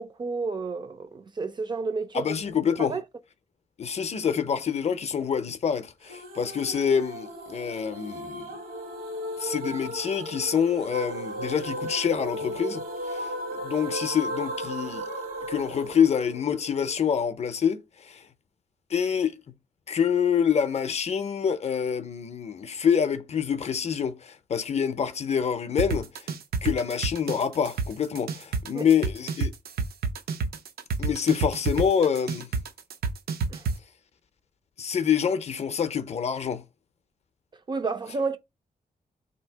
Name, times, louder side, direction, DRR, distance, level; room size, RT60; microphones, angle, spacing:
voice 1, 0.0-2.4 2.8-3.0 28.7-28.9 33.5-33.7 37.7-38.4, right 4 dB, 30° right, 0.3 m, -31 dB
voice 2, 2.1-3.0 3.8-8.5 9.4-13.3 13.6-15.1 15.5-18.2 18.9-19.4 19.9-26.1 26.6-29.5 31.0-32.5 34.8-36.6, left 7 dB, 45° left, 0.5 m, -26 dB
sound 1, 6.1-17.0, right 1 dB, 65° right, 1.0 m, -36 dB
sound 2, 25.8-33.7, right 5 dB, 80° right, 0.5 m, -28 dB
3.3 x 2.7 x 4.4 m
wide cardioid pair, 160°, 16 cm